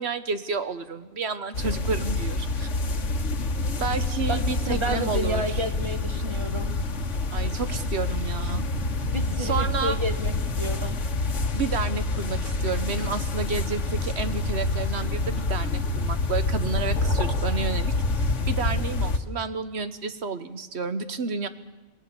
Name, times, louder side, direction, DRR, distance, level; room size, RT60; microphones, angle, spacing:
voice 1, 0.0-2.7 3.8-5.6 7.3-8.7 9.4-10.0 11.5-21.5, right 5 dB, 65° right, 11 dB, 1.4 m, -31 dB
sound 1, 1.5-19.2, left 2 dB, 85° left, 1.7 m, -27 dB
voice 2, 4.7-6.7 9.1-11.0, right 1 dB, 25° right, 8 dB, 1.2 m, -31 dB
28.0 x 19.0 x 7.0 m, 1.2 s
omnidirectional pair, 1.2 m